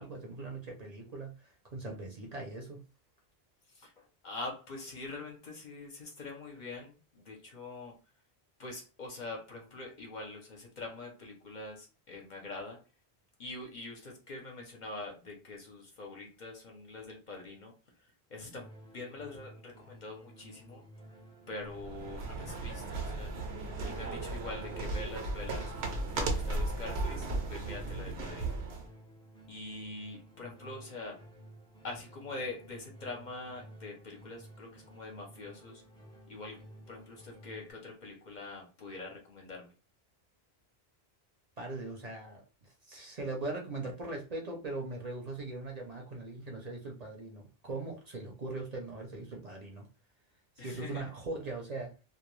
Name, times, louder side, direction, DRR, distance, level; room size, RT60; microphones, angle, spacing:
voice 1, 0.0-2.8 41.6-49.9 50.6-51.9, right 2 dB, 50° right, 0.6 m, -40 dB
voice 2, 3.7-8.0 8.6-12.8 13.4-17.8 18.3-20.8 21.5-23.3 23.8-28.6 29.5-31.2 31.8-35.8 36.3-36.6 36.9-39.7 50.6-51.1, left 2 dB, 50° left, 0.7 m, -44 dB
sound 1, 18.5-37.7, right 1 dB, 5° left, 0.4 m, -54 dB
sound 2, 21.7-28.9, right 2 dB, 85° right, 0.9 m, -36 dB
2.2 x 2.1 x 3.0 m
omnidirectional pair, 1.1 m